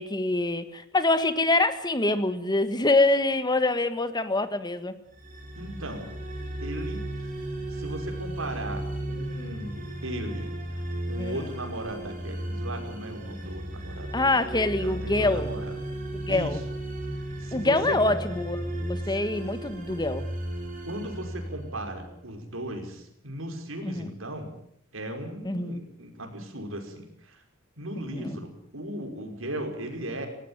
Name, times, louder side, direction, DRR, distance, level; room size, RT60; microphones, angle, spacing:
voice 1, 0.0-4.9 11.2-11.4 14.1-15.5 16.1-16.6 17.5-20.3 23.8-24.0 25.4-25.8 28.0-28.4, left 2 dB, 20° left, 11 dB, 1.7 m, -25 dB
sound 1, 5.1-22.2, right 1 dB, 40° right, 5.8 m, -35 dB
voice 2, 5.6-6.1 6.6-7.0 7.7-9.7 10.0-10.5 11.1-14.4 14.8-15.7 16.3-16.6 17.4-18.2 19.0-19.2 20.9-24.5 24.9-27.4 27.8-30.3, right 1 dB, 80° right, 4 dB, 5.5 m, -37 dB
19.0 x 18.5 x 9.1 m, 0.70 s
head